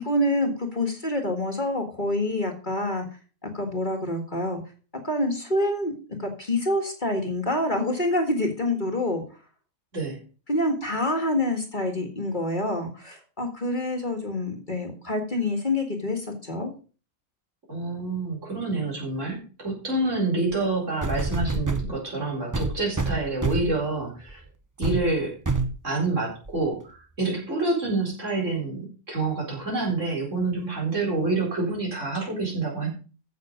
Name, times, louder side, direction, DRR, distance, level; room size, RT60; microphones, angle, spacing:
voice 1, 0.0-3.1 3.4-4.6 5.0-5.9 6.2-9.2 10.5-16.7, left 1 dB, 35° left, 4 dB, 2.0 m, -27 dB
voice 2, 17.7-24.4 24.8-25.4 25.8-32.9, right 3 dB, 60° right, -2 dB, 4.8 m, -27 dB
sound 1, 20.5-20.6 21.0-21.9 22.5-23.8 24.3-24.4 24.8-25.0 25.4-25.8 26.5-26.6, right 3 dB, 15° right, 0.7 m, -27 dB
14.5 x 6.5 x 5.1 m, 0.36 s
omnidirectional pair, 1.4 m